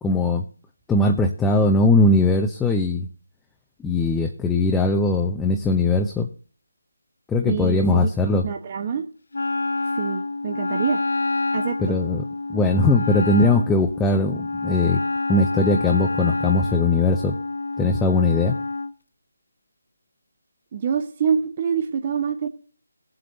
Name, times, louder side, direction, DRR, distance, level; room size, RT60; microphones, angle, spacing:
voice 1, 0.0-0.5 0.9-3.1 3.8-6.3 7.3-8.5 11.8-15.0 15.3-17.4 17.8-18.6, left 2 dB, 5° left, 3 dB, 0.7 m, -20 dB
voice 2, 7.5-8.1 8.4-9.0 9.9-11.0 11.5-12.0 20.7-22.5, right 7 dB, 30° right, 4 dB, 1.1 m, -25 dB
Wind instrument woodwind instrument, 9.3-18.9, left 3 dB, 70° left, 0.8 m, -27 dB
18.5 x 7.7 x 4.1 m, 0.41 s
figure-of-eight pair, 160°, 0 cm